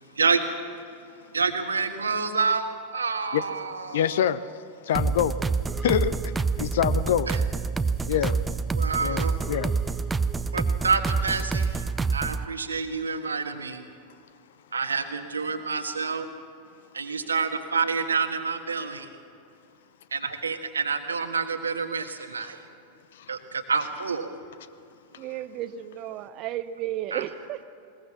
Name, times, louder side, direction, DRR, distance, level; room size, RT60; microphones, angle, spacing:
voice 1, 1.3-4.3 7.3-7.4 8.8-9.4 10.5-11.9 12.1-13.9 14.7-16.3 16.9-19.1 20.1-22.6 23.3-24.4 27.1-27.2, right 5 dB, 75° right, 1.5 m, -28 dB
voice 2, 3.9-4.4 4.8-5.4 5.8-7.3 8.1-8.4 9.0-9.7 22.4-22.5 23.1-23.3, left 10 dB, 60° left, 0.7 m, -26 dB
sound 1, 4.9-12.5, right 4 dB, 10° right, 0.5 m, -27 dB
voice 3, 25.2-27.6, right 12 dB, 40° right, 0.9 m, -33 dB
21.0 x 20.0 x 7.2 m
figure-of-eight pair, 90°, 0 cm